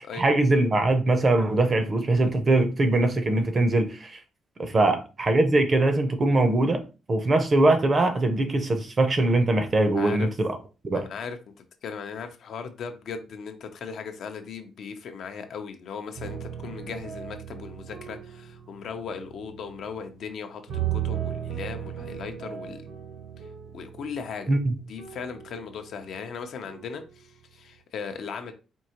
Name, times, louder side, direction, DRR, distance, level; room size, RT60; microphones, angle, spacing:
voice 1, 0.2-4.2 4.6-6.8 7.1-10.6 10.8-11.0 24.5-24.7, right 2 dB, 25° right, 0.6 m, -22 dB
voice 2, 10.0-10.3 10.9-20.6 20.9-22.8 23.7-24.5 24.9-28.5, left 6 dB, 60° left, 0.5 m, -38 dB
sound 1, 16.2-20.2 20.7-26.2 26.6-27.1, right 10 dB, 80° right, 1.1 m, -36 dB
4.5 x 2.7 x 2.9 m
cardioid pair, 160°, 0 cm